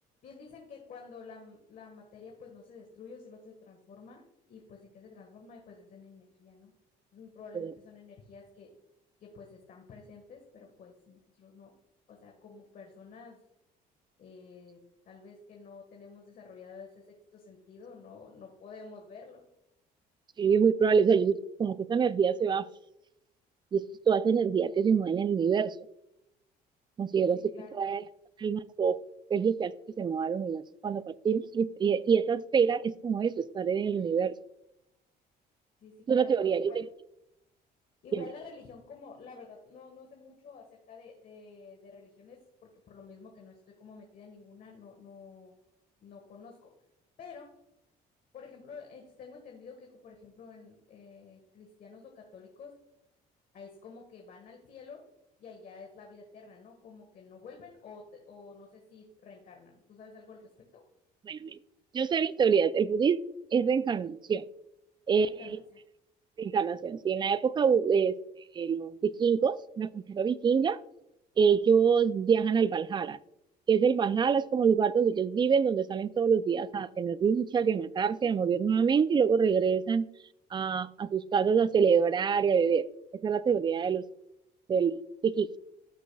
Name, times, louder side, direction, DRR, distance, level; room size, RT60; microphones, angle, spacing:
voice 1, 0.2-6.7 7.1-8.7 9.2-11.7 12.1-13.4 14.2-14.8 15.0-17.0 17.3-19.4 27.2-27.8 35.8-36.8 38.0-42.4 42.9-45.5 46.0-46.7 47.2-47.5 48.3-52.7 53.5-55.0 55.4-60.8 65.1-65.8, left 5 dB, 55° left, 1 dB, 1.6 m, -50 dB
voice 2, 20.4-22.7 23.7-25.7 27.0-27.4 27.7-28.0 28.4-29.0 29.3-34.3 36.1-36.7 38.1-38.2 61.3-61.6 61.9-63.2 63.5-64.4 65.1-65.6 66.4-68.2 68.6-70.8 71.4-73.2 73.7-80.1 80.5-82.8 83.2-84.0 84.7-85.5, right 6 dB, 25° right, 17 dB, 0.3 m, -26 dB
14.5 x 6.2 x 2.3 m, 0.85 s
cardioid pair, 110°, 17 cm